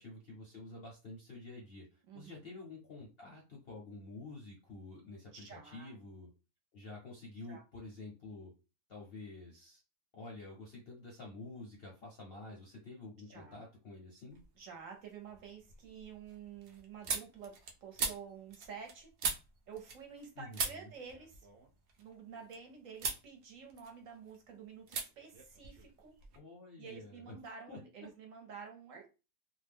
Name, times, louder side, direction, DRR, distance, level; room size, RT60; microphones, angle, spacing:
voice 1, 0.0-6.3 6.7-8.5 8.9-9.8 10.1-14.4 20.4-20.9 26.3-27.3 27.7-27.8, left 2 dB, 55° left, -1 dB, 0.7 m, -49 dB
voice 2, 2.1-2.4 5.3-5.9 7.5-7.6 13.3-13.6 14.6-17.5 17.8-19.1 19.7-21.5 22.0-26.1 26.8-29.1, right 6 dB, 60° right, 2 dB, 1.0 m, -50 dB
sound 1, 14.3-14.8 15.2-20.3 20.5-22.6 23.0-23.3 23.6-24.4 24.9-25.1 25.3-26.4, right 5 dB, 80° right, 0.5 m, -40 dB
2.6 x 2.1 x 3.4 m, 0.30 s
omnidirectional pair, 1.7 m